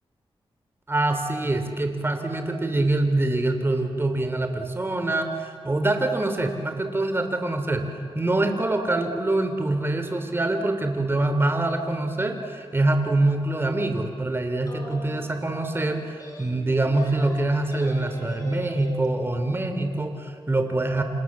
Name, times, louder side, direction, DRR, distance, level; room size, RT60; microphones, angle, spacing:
voice 1, 0.9-7.9 8.1-21.0, right 2 dB, 25° right, 6 dB, 3.3 m, -25 dB
sound 1, 14.6-19.1, left 1 dB, 35° left, 5.5 m, -41 dB
28.5 x 27.0 x 7.4 m, 2.2 s
wide cardioid pair, 120°, 10 cm